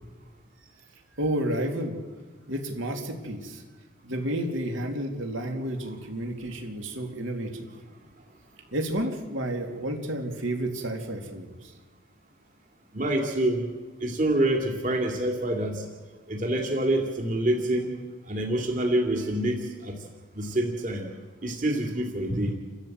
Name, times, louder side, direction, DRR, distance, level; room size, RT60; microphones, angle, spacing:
voice 1, 1.2-2.0 2.5-3.6 4.0-7.7 8.7-11.7, right 1 dB, 65° right, 3 dB, 3.2 m, -31 dB
voice 2, 12.9-13.6 14.0-15.8 16.3-18.0 18.3-20.0 20.3-21.1 21.4-22.5, right 1 dB, 40° right, 1 dB, 2.9 m, -26 dB
30.0 x 13.5 x 8.1 m, 1.3 s
head